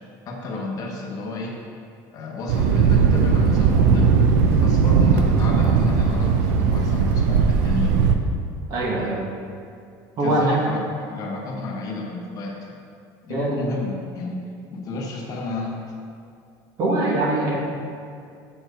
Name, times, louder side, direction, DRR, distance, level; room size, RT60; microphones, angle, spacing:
voice 1, 0.3-1.5 2.1-4.1 4.6-8.0 10.2-12.8 13.2-14.4 14.7-15.8, left 3 dB, 40° left, 0 dB, 1.0 m, -31 dB
Thunder, 2.5-8.2, right 5 dB, 90° right, 0.5 m, -18 dB
voice 2, 8.7-9.2 10.2-10.6 13.3-13.6 16.8-17.6, right 2 dB, 40° right, -3 dB, 1.5 m, -22 dB
7.8 x 4.4 x 5.1 m, 2.4 s
cardioid pair, 150°, 9 cm